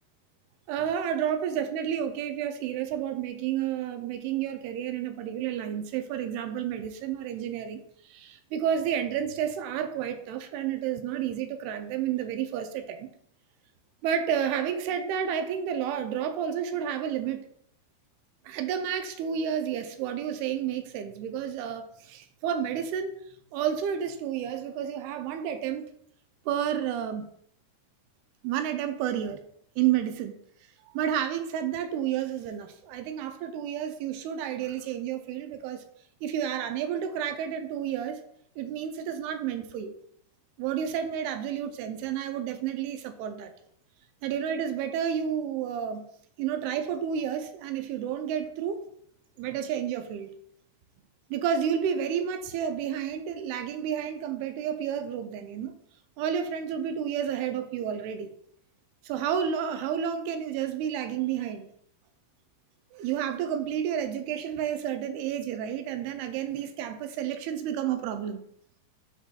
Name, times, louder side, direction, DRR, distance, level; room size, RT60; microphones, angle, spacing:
voice 1, 0.7-13.1 14.0-17.4 18.5-23.2 23.5-25.9 26.5-27.3 28.4-29.4 29.8-30.4 30.9-35.8 36.2-38.2 38.6-39.9 40.6-43.5 44.2-46.1 46.4-48.8 49.4-50.3 51.3-55.8 56.2-58.3 59.0-61.7 62.9-68.4, right 9 dB, 85° right, 8 dB, 2.5 m, -30 dB
12.5 x 4.2 x 2.3 m, 0.69 s
omnidirectional pair, 4.6 m